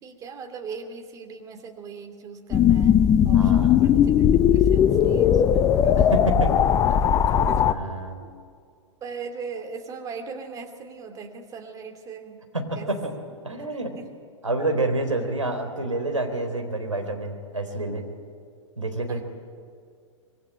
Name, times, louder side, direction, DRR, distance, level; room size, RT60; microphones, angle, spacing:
voice 1, 0.0-6.0 7.5-7.7 8.2-8.3 9.0-12.4 12.8-12.9 13.6-13.7 14.0-14.1 19.1-19.2, right 5 dB, 20° right, 5 dB, 2.8 m, -39 dB
sound 1, 2.5-7.7, left 9 dB, 20° left, 0.9 m, -18 dB
voice 2, 3.3-3.8 6.0-6.5 6.9-8.2 12.5-13.1 13.4-14.0 14.4-18.0 18.8-19.2, right 2 dB, 80° right, 4 dB, 4.0 m, -28 dB
25.5 x 22.5 x 8.9 m, 2.2 s
figure-of-eight pair, 105°, 16 cm